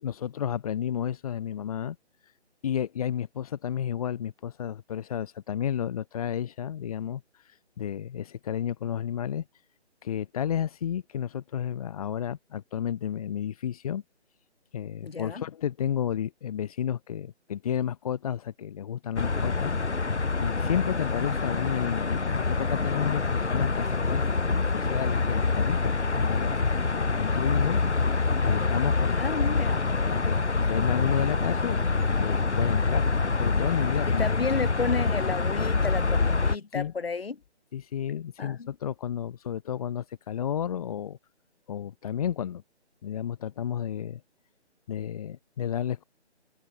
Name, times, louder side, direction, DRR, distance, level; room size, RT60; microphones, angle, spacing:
voice 1, 0.0-2.0 2.2-2.3 2.6-9.4 10.0-14.0 14.7-19.7 20.4-24.3 24.7-26.6 27.0-29.5 30.0-30.4 30.6-31.8 32.2-33.1 33.3-34.2 36.7-36.9 37.7-41.2 41.7-42.6 43.0-44.2 44.9-46.0, left 9 dB, 30° left, 3.9 m, -32 dB
voice 2, 15.0-15.4 29.2-30.0 34.1-37.4 38.4-38.7, left 4 dB, 60° left, 7.0 m, -32 dB
sound 1, 19.2-36.6, left 4 dB, 80° left, 1.8 m, -26 dB
figure-of-eight pair, 155°, 34 cm